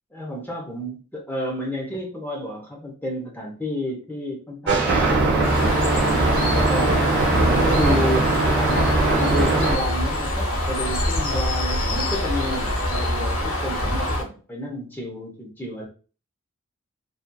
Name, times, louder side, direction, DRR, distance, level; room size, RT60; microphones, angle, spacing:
voice 1, 0.1-5.4 5.9-7.1 7.4-15.9, left 1 dB, 10° left, -1 dB, 0.6 m, -31 dB
sound 1, 4.7-9.7, right 3 dB, 55° right, 0.9 m, -21 dB
Bird, 5.4-14.2, left 1 dB, 75° left, 0.6 m, -24 dB
2.7 x 2.3 x 2.2 m, 0.36 s
head